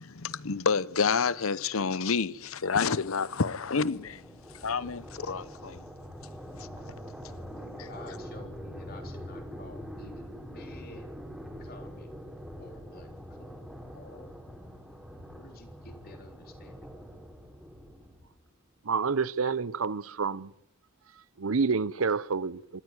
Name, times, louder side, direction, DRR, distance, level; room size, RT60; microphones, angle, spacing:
voice 1, 0.0-4.2 4.5-5.8 6.6-6.7 7.8-7.9, left 5 dB, 90° left, 0.9 m, -29 dB
sound 1, 2.4-18.5, equal, ahead, 3.7 m, -44 dB
voice 2, 7.6-11.2 11.6-12.2 12.6-14.4 15.3-17.1, left 2 dB, 50° left, 3.8 m, -51 dB
voice 3, 18.8-20.5 21.4-22.8, right 5 dB, 85° right, 0.8 m, -28 dB
25.0 x 14.0 x 9.7 m
head